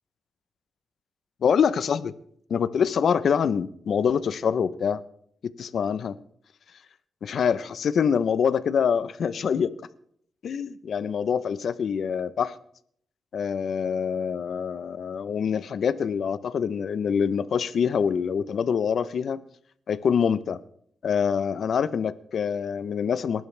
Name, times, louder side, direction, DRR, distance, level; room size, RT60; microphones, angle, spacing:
voice 1, 1.4-2.1 2.5-5.0 5.6-6.2 7.2-9.7 10.4-12.5 13.3-19.4 19.9-20.6 21.0-23.5, left 7 dB, 65° left, 0.8 m, -25 dB
28.5 x 12.0 x 3.4 m
cardioid pair, 85°, 0 cm